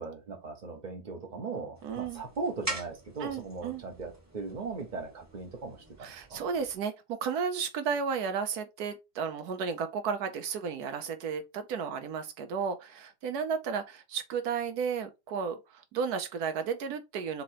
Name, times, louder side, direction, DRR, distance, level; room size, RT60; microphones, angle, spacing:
voice 1, 0.0-6.4, right 4 dB, 30° right, 0.9 m, -38 dB
sound 1, 1.7-6.8, right 2 dB, 10° right, 1.1 m, -44 dB
voice 2, 1.8-2.2 3.2-3.8 6.0-17.4, right 6 dB, 70° right, 1.0 m, -33 dB
3.9 x 2.9 x 4.5 m
omnidirectional pair, 2.0 m